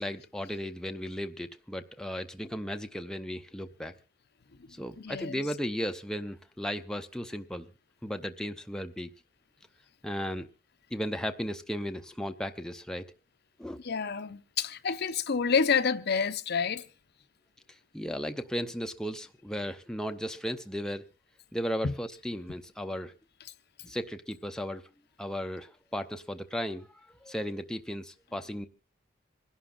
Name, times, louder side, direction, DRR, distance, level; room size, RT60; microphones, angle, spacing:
voice 1, 0.0-3.9 4.7-7.7 8.0-9.1 10.0-10.5 10.9-13.1 13.6-13.8 17.9-21.1 21.5-23.1 23.8-24.8 25.2-28.7, equal, 5° left, 0.6 m, -35 dB
voice 2, 5.0-5.4 13.8-16.9 21.8-21.9, left 6 dB, 55° left, 0.7 m, -28 dB
27.0 x 11.5 x 2.4 m
head